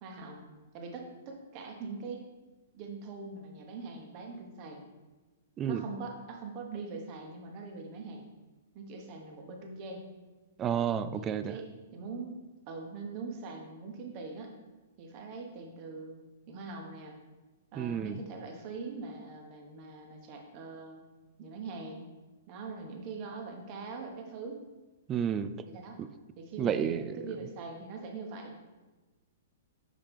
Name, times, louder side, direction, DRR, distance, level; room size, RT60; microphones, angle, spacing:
voice 1, 0.0-2.3 2.7-4.8 5.7-8.2 8.7-10.0 11.1-12.4 12.7-14.5 15.0-16.2 16.5-17.1 17.7-21.0 21.4-22.1 22.5-24.6 25.7-26.0 26.4-28.5, right 4 dB, 40° right, 2 dB, 1.1 m, -42 dB
voice 2, 10.6-11.6 17.8-18.2 25.1-25.5 26.0-26.1 26.6-27.2, right 8 dB, 25° right, 12 dB, 0.3 m, -31 dB
5.7 x 4.8 x 3.5 m, 1.2 s
hypercardioid pair, 120°, 0 cm